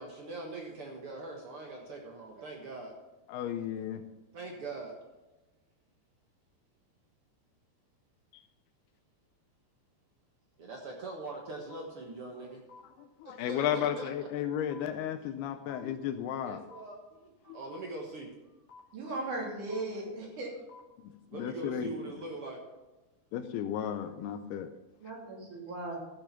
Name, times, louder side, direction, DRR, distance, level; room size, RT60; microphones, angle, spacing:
voice 1, 0.0-2.9 4.0-4.9 10.6-14.3 16.4-18.3 19.9-20.3 21.3-22.6, right 2 dB, 90° right, 0 dB, 1.2 m, -42 dB
voice 2, 3.3-4.0 13.2-16.6 17.5-17.6 21.4-21.9 23.3-24.7, left 9 dB, 80° left, 9 dB, 2.5 m, -33 dB
sound 1, 11.7-11.8 12.7-12.8 13.7-13.8 14.7-14.8 15.7-15.8 16.7-16.8 17.7-17.8 18.7-18.8 19.7-19.8 20.7-20.8, left 4 dB, 60° left, 3.7 m, -51 dB
voice 3, 18.9-20.6 25.0-26.0, right 2 dB, 50° right, -1 dB, 3.9 m, -37 dB
14.0 x 7.1 x 5.9 m, 1.1 s
omnidirectional pair, 4.9 m